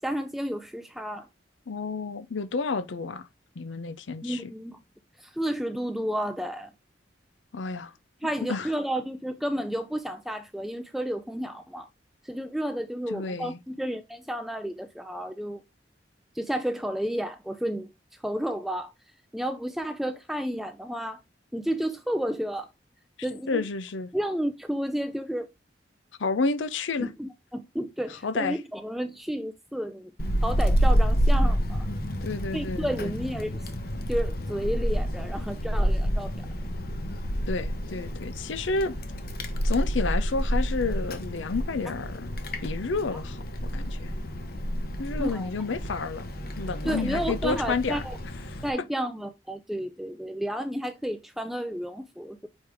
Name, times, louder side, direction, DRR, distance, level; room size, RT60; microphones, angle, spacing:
voice 1, 0.0-1.3 4.2-4.8 5.2-6.7 8.2-11.9 12.2-15.6 16.3-17.9 18.2-18.9 19.3-21.2 21.5-22.7 23.2-23.6 24.1-25.5 27.0-30.1 30.4-31.9 32.5-33.7 34.1-36.3 45.2-45.5 46.8-48.2 48.6-52.5, equal, ahead, 0.4 m, -31 dB
voice 2, 1.7-3.3 3.6-4.5 7.5-7.9 8.5-8.7 13.1-13.6 23.5-24.1 26.2-27.1 28.1-28.6 32.2-33.1 37.5-39.0 39.6-42.4 42.6-44.1 45.0-46.3 46.6-48.1 48.5-48.6, left 4 dB, 90° left, 0.6 m, -30 dB
Wind, 30.2-48.7, equal, 55° left, 1.1 m, -28 dB
6.4 x 4.8 x 3.4 m
head